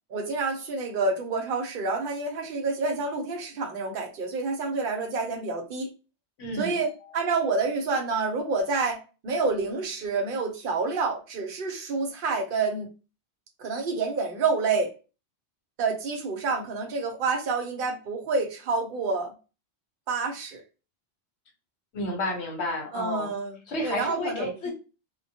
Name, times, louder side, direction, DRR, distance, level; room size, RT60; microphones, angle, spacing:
voice 1, 0.1-5.9 6.6-12.9 13.6-14.9 15.8-19.3 20.1-20.6 22.9-23.6 23.8-24.7, right 4 dB, 60° right, 0.7 m, -28 dB
voice 2, 6.4-6.8 21.9-23.3 23.7-24.7, left 1 dB, 75° left, 1.1 m, -31 dB
2.2 x 2.1 x 2.7 m
omnidirectional pair, 1.1 m